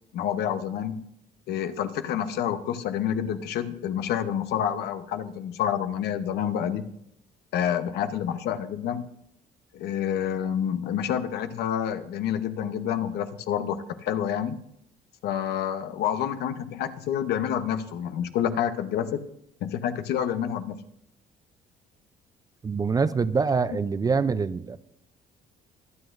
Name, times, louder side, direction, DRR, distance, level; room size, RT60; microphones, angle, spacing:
voice 1, 0.1-1.0 1.5-6.8 7.5-9.1 9.7-14.6 15.2-19.2 19.6-20.8, left 9 dB, 75° left, 10 dB, 0.9 m, -28 dB
voice 2, 22.6-24.8, right 5 dB, 20° right, 14 dB, 0.4 m, -25 dB
22.0 x 8.0 x 2.5 m, 0.74 s
cardioid pair, 110°, 17 cm